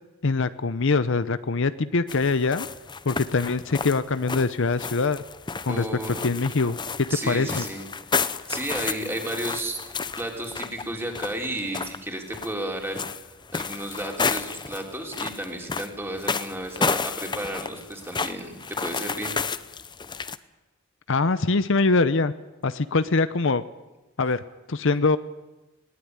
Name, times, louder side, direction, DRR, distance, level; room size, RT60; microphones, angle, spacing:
voice 1, 0.2-2.7 3.0-5.2 5.7-5.9 6.2-6.8 7.3-7.7 21.1-22.3 22.6-23.6 24.2-24.4 24.7-25.2, left 3 dB, 60° left, 13 dB, 0.8 m, -23 dB
sound 1, 2.1-20.4, left 5 dB, 20° left, 0.8 m, -32 dB
voice 2, 5.7-6.4 7.1-7.8 8.2-9.8 10.2-13.1 13.5-19.4, right 1 dB, 10° right, 1 dB, 3.6 m, -33 dB
21.0 x 18.5 x 9.7 m, 1.1 s
head